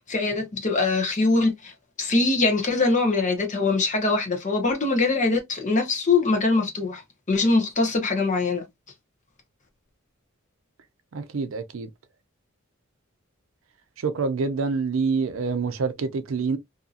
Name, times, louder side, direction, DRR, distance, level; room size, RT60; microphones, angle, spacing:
voice 1, 0.1-7.0 7.3-8.7, left 3 dB, 35° left, 0.9 m, -23 dB
voice 2, 11.1-11.9 14.0-16.6, right 4 dB, 70° right, 0.5 m, -26 dB
2.7 x 2.6 x 2.4 m
head